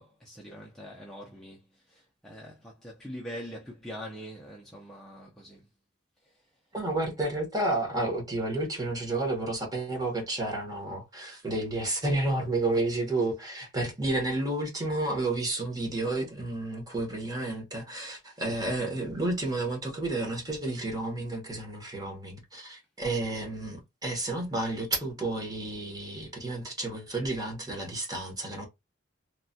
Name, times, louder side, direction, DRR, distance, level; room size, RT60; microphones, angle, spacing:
voice 1, 0.0-1.6 1.9-5.6, equal, ahead, 0.5 m, -43 dB
voice 2, 6.7-28.7, right 2 dB, 20° right, 1.0 m, -31 dB
3.1 x 2.2 x 2.6 m
head